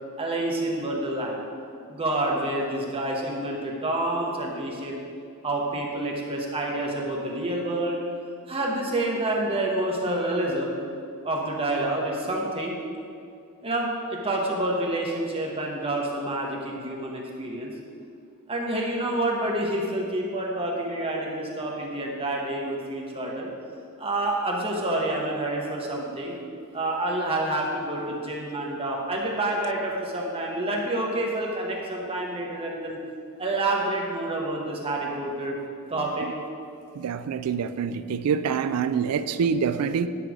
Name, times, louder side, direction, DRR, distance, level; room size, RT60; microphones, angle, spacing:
voice 1, 0.2-1.4 1.9-5.0 5.4-8.0 8.5-10.8 11.2-12.8 13.6-17.7 18.5-23.5 24.0-26.4 26.7-33.0 33.4-35.6 35.9-36.3, right 1 dB, 25° right, -1 dB, 1.0 m, -28 dB
voice 2, 37.0-40.1, right 6 dB, 85° right, 12 dB, 0.3 m, -26 dB
9.8 x 3.3 x 6.0 m, 2.4 s
head